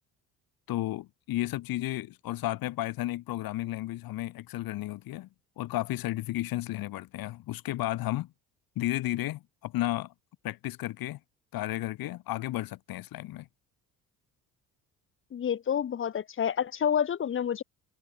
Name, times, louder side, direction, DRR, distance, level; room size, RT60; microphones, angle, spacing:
voice 1, 0.7-5.3 5.6-8.3 8.8-10.1 10.4-11.2 11.5-13.5, left 16 dB, 65° left, 1.3 m, -33 dB
voice 2, 15.3-17.6, left 8 dB, 35° left, 0.7 m, -28 dB
supercardioid pair, 70°, 38 cm